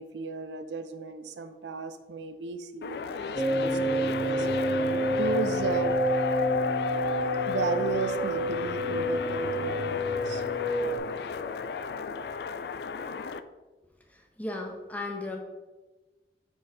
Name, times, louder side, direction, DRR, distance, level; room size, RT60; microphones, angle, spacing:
voice 1, 0.0-4.5 5.1-6.0 7.5-10.4, right 3 dB, 85° right, 9 dB, 0.6 m, -34 dB
sound 1, 2.8-13.4, left 5 dB, 65° left, 0.3 m, -33 dB
sound 2, 3.4-11.0, right 1 dB, 10° right, 0.7 m, -29 dB
voice 2, 14.1-15.4, left 2 dB, 10° left, 1 dB, 1.0 m, -36 dB
6.9 x 4.5 x 4.8 m, 1.2 s
head